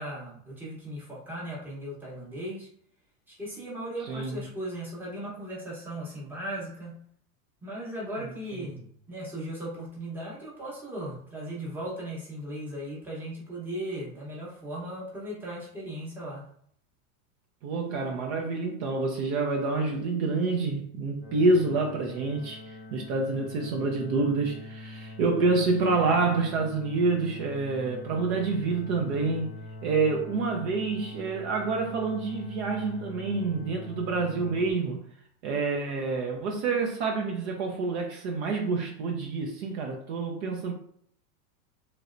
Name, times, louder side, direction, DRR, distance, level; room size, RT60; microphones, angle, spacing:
voice 1, 0.0-2.7 3.3-6.9 7.6-8.8 9.1-16.5, right 1 dB, 5° right, 0.8 m, -37 dB
voice 2, 4.1-4.4 17.6-29.6 29.8-35.0 35.4-40.7, right 3 dB, 50° right, 0.6 m, -27 dB
sound 1, 21.2-34.7, left 2 dB, 20° left, 0.3 m, -43 dB
3.2 x 2.6 x 2.5 m
supercardioid pair, 145°, 45 cm